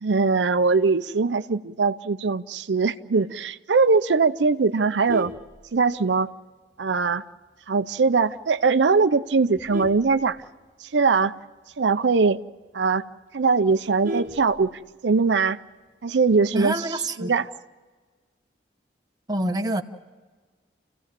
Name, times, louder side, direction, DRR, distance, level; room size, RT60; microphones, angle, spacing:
voice 1, 0.0-5.3 5.7-6.3 6.8-7.2 7.7-10.4 10.8-11.3 11.8-12.4 12.7-13.0 13.3-14.7 15.0-15.6 16.0-17.5, right 4 dB, 85° right, 11 dB, 0.6 m, -21 dB
Vehicle horn car horn honking, 4.8-6.3 6.8-7.0 7.3-7.4 7.8-7.9 8.2-8.6 9.1-11.0 11.3-11.4 11.7-11.8 12.2-12.3 12.7-12.8 13.0-15.1 16.3-16.7, right 1 dB, 45° right, 1.2 m, -36 dB
voice 2, 16.5-17.3 19.3-19.8, right 1 dB, 20° right, 5 dB, 1.0 m, -26 dB
29.0 x 16.0 x 7.5 m, 1.4 s
head